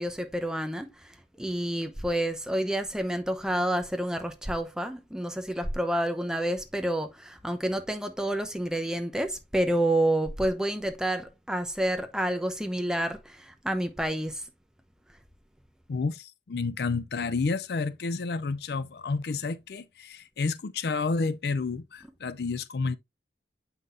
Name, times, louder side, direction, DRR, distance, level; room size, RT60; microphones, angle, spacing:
voice 1, 0.0-14.5, right 1 dB, 5° right, 0.7 m, -29 dB
voice 2, 15.9-23.0, left 4 dB, 65° left, 0.5 m, -30 dB
7.6 x 5.6 x 2.6 m
head